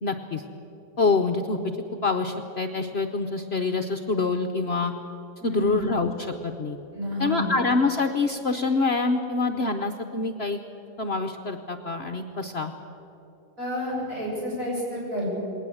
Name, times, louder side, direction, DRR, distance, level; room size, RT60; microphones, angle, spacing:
voice 1, 0.0-0.4 1.0-1.7 2.0-4.9 5.4-6.8 7.2-10.6 11.0-12.7, left 3 dB, 50° left, 5 dB, 0.9 m, -26 dB
voice 2, 5.4-5.8 6.9-7.5 13.6-15.3, equal, 55° right, -5 dB, 7.5 m, -30 dB
20.5 x 18.5 x 7.8 m, 2.9 s
omnidirectional pair, 1.7 m